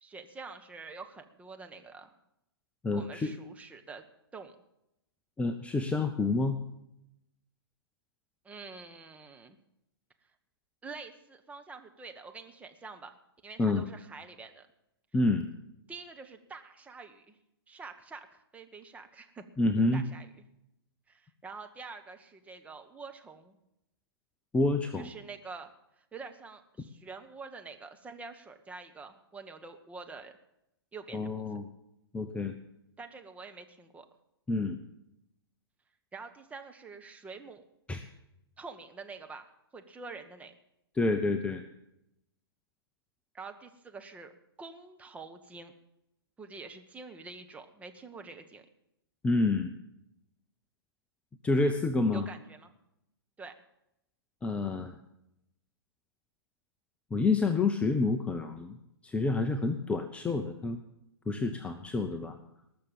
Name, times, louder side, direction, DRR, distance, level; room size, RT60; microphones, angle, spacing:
voice 1, 0.0-2.1 2.9-4.0 4.3-4.5 8.4-9.6 10.8-13.2 13.4-14.7 15.9-17.4 17.7-19.4 19.9-20.3 21.1-23.6 25.0-25.7 26.0-30.4 30.9-31.4 33.0-34.1 36.1-37.6 38.6-40.5 43.3-44.3 44.6-45.7 46.4-48.7 52.1-52.7 53.4-53.5, right 4 dB, 10° right, 5 dB, 1.2 m, -46 dB
voice 2, 2.8-3.3 5.4-6.6 13.6-13.8 15.1-15.4 19.6-20.0 24.5-25.1 31.1-31.7 32.1-32.5 34.5-34.8 37.9-38.1 41.0-41.6 49.2-49.7 51.4-52.3 54.4-55.0 57.1-58.8 59.0-60.8 61.3-62.4, left 3 dB, 10° left, 6 dB, 0.7 m, -28 dB
19.0 x 6.7 x 7.3 m, 0.84 s
figure-of-eight pair, 120°, 13 cm